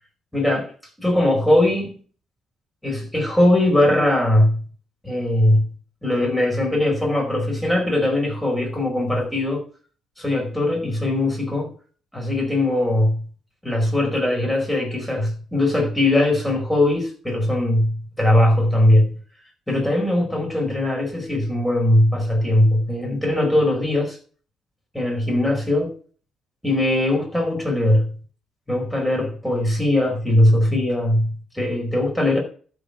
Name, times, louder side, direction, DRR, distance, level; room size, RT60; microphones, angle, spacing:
voice 1, 0.3-0.7 1.0-2.0 2.8-4.6 5.0-5.7 6.0-9.7 10.2-11.7 12.1-13.2 13.6-19.2 19.7-24.2 24.9-25.9 26.6-28.1 28.7-32.4, left 1 dB, 5° left, 4.9 m, -20 dB
12.5 x 5.2 x 6.8 m
cardioid pair, 135°, 0 cm